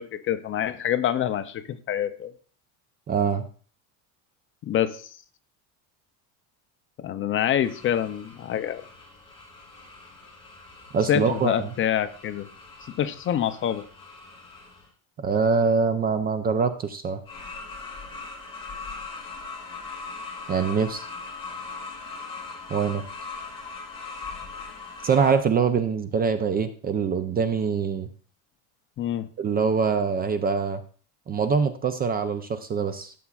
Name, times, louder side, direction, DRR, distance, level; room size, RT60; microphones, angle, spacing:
voice 1, 0.0-2.3 4.6-5.1 7.0-8.8 11.1-12.5 13.0-13.8 29.0-29.3, left 10 dB, 30° left, 11 dB, 0.5 m, -26 dB
voice 2, 3.1-3.4 10.9-11.7 15.2-17.2 20.5-21.0 22.7-23.0 25.0-28.1 29.4-30.8 31.3-33.1, right 5 dB, 25° right, 10 dB, 0.4 m, -24 dB
sound 1, 7.6-14.9 17.3-25.4, left 4 dB, 15° left, 2.1 m, -40 dB
13.5 x 7.0 x 2.4 m, 0.42 s
cardioid pair, 140°, 40 cm